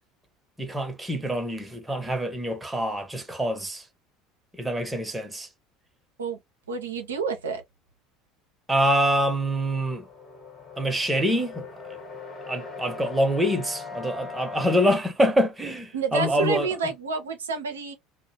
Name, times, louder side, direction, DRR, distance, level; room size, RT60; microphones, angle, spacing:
voice 1, 0.6-3.8 4.6-5.5 8.7-10.0 10.8-12.0 12.5-16.7, equal, 10° right, 0.9 m, -25 dB
voice 2, 6.7-7.6 15.9-17.9, right 5 dB, 80° right, 0.5 m, -29 dB
sound 1, 9.3-14.9, left 4 dB, 30° left, 1.2 m, -40 dB
2.3 x 2.1 x 2.8 m
figure-of-eight pair, 70°, 0 cm